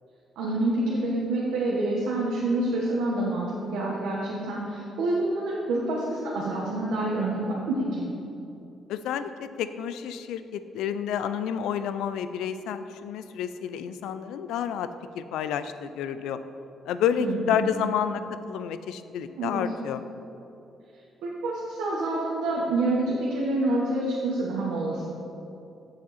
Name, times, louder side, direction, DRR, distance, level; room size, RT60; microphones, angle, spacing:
voice 1, 0.4-8.1 17.2-17.8 19.4-19.6 21.2-25.1, right 2 dB, 90° right, -5 dB, 1.1 m, -27 dB
voice 2, 8.9-14.9 15.1-16.4 16.9-20.0, left 8 dB, 90° left, 11 dB, 0.3 m, -30 dB
7.5 x 7.1 x 4.1 m, 2.8 s
cardioid pair, 90°, 0 cm